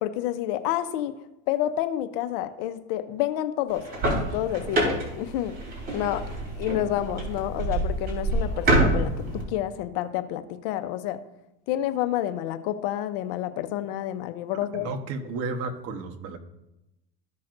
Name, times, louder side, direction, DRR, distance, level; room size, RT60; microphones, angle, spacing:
voice 1, 0.0-1.2 1.5-5.6 5.9-6.3 6.6-11.2 11.7-14.9, left 12 dB, 70° left, 11 dB, 0.7 m, -29 dB
sound 1, 3.7-9.4, right 1 dB, 35° right, 3.3 m, -27 dB
voice 2, 14.7-16.4, right 3 dB, 55° right, 4 dB, 1.2 m, -32 dB
14.0 x 5.7 x 2.6 m, 0.92 s
supercardioid pair, 130°, 29 cm